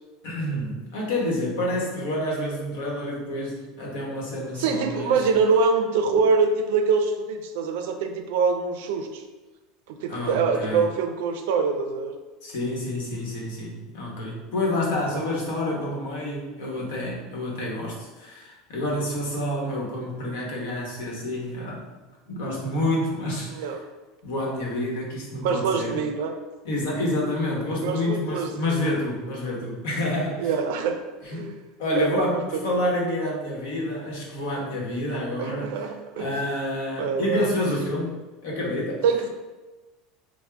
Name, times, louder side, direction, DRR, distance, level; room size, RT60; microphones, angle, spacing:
voice 1, 0.2-5.2 10.1-10.8 12.4-21.8 22.3-23.8 24.2-26.0 26.6-30.5 31.2-31.5 31.8-35.9 36.2-38.1 38.4-39.0, left 1 dB, 80° left, -3 dB, 1.0 m, -28 dB
voice 2, 4.6-9.2 10.0-12.1 15.1-15.4 23.5-23.8 25.4-26.3 27.8-28.8 30.4-31.0 31.3-31.6 32.0-32.4 32.7-32.8 35.4-36.3 37.0-37.5 39.0-39.3, right 5 dB, 75° right, 5 dB, 0.4 m, -24 dB
3.5 x 2.1 x 3.4 m, 1.2 s
supercardioid pair, 165°, 0 cm